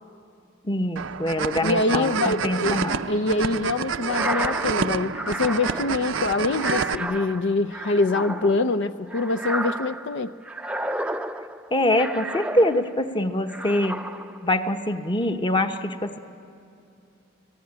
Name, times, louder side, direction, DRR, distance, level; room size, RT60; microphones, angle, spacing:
voice 1, 0.6-3.0 11.7-14.1 14.4-16.2, left 1 dB, 25° left, 7 dB, 1.0 m, -24 dB
sound 1, 1.0-6.9, right 6 dB, 75° right, 0.6 m, -28 dB
voice 2, 1.6-2.8 3.1-10.3, left 3 dB, 65° left, 11 dB, 0.5 m, -24 dB
sound 2, 4.0-13.1 13.5-14.5, right 1 dB, 5° right, 0.5 m, -32 dB
29.0 x 18.5 x 9.7 m, 2.6 s
head